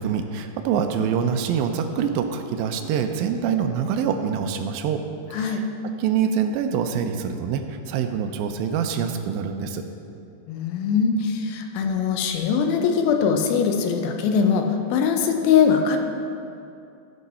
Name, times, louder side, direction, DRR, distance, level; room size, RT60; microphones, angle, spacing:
voice 1, 0.0-5.0 5.3-5.6 6.0-9.8, right 7 dB, 80° right, 7 dB, 2.3 m, -25 dB
voice 2, 5.3-5.6 10.5-16.0, left 6 dB, 80° left, 4 dB, 2.4 m, -21 dB
16.0 x 5.6 x 4.2 m, 2.6 s
omnidirectional pair, 4.5 m